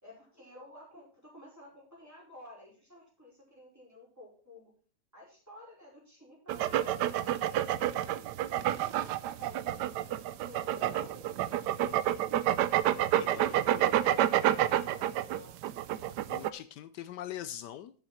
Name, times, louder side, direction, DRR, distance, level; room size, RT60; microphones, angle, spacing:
voice 1, 0.0-4.7 5.1-7.9 8.4-12.4 13.1-15.7, left 1 dB, 10° right, -4 dB, 5.2 m, -53 dB
sound 1, 6.5-16.5, right 12 dB, 75° right, 1.2 m, -29 dB
voice 2, 13.2-13.6 16.0-17.9, left 11 dB, 80° left, 13 dB, 1.2 m, -43 dB
11.0 x 8.1 x 4.3 m, 0.43 s
omnidirectional pair, 1.9 m